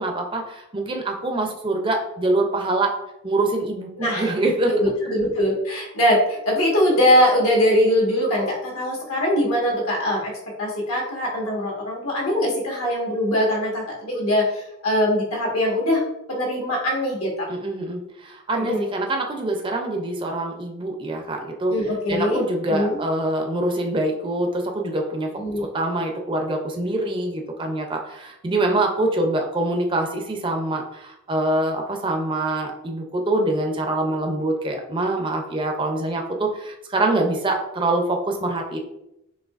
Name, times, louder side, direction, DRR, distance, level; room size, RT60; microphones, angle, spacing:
voice 1, 0.0-3.0 3.2-4.7 17.5-21.7 22.1-25.3 25.6-38.8, right 2 dB, 25° right, 3 dB, 0.5 m, -25 dB
voice 2, 4.0-4.3 4.7-10.3 10.6-16.0 16.3-17.5 18.6-18.8 21.7-22.4 22.7-23.0 25.4-25.6, left 1 dB, 85° left, -2 dB, 1.4 m, -22 dB
6.3 x 2.8 x 2.4 m, 0.85 s
head